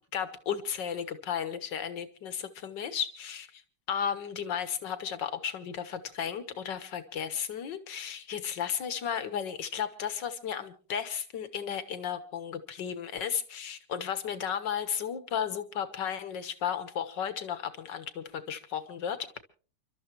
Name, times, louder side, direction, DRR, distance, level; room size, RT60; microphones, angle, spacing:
voice 1, 0.1-3.5 3.9-19.2, left 8 dB, 85° left, 11 dB, 2.0 m, -34 dB
29.5 x 13.0 x 3.1 m, 0.38 s
omnidirectional pair, 1.9 m